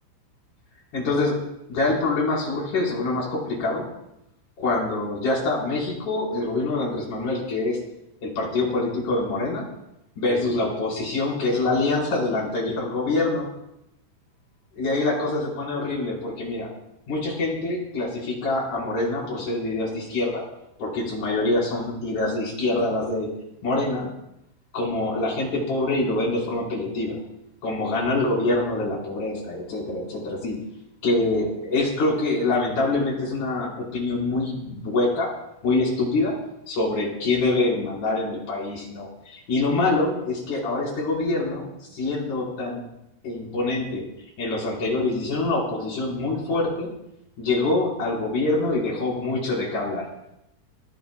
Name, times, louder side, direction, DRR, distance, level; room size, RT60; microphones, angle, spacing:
voice 1, 0.9-1.4 1.7-3.9 4.6-7.8 8.2-9.7 10.2-13.5 14.8-16.7 17.1-20.4 20.8-23.3 23.6-24.1 24.7-27.2 27.6-30.6 31.0-35.3 35.6-36.3 36.7-42.8 43.2-44.0 44.4-46.9 47.4-50.1, left 2 dB, 40° left, -3 dB, 5.6 m, -25 dB
24.5 x 16.5 x 2.3 m, 0.83 s
omnidirectional pair, 5.8 m